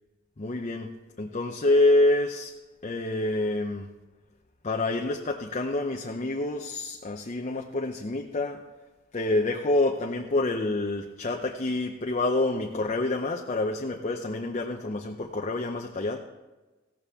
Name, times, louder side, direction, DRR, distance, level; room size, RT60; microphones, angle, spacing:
voice 1, 0.4-0.9 1.2-2.5 2.8-3.9 4.6-8.6 9.1-16.2, left 2 dB, 35° left, 3 dB, 0.7 m, -27 dB
16.0 x 12.5 x 3.6 m, 1.2 s
head